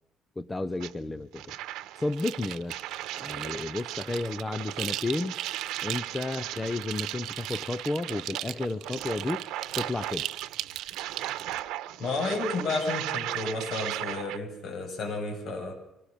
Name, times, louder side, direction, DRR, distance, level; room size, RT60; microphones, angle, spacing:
voice 1, 0.4-1.6 2.0-2.8 3.1-5.4 5.8-9.4 9.7-10.3, left 2 dB, 15° left, 12 dB, 0.7 m, -32 dB
sound 1, 0.8-0.9 1.3-14.4, right 14 dB, 85° right, 1.1 m, -37 dB
sound 2, 2.1-11.6, right 13 dB, 70° right, 0.7 m, -38 dB
voice 2, 12.0-15.7, left 3 dB, 45° left, 2 dB, 7.4 m, -31 dB
25.0 x 18.0 x 6.9 m, 0.86 s
cardioid pair, 150°, 0 cm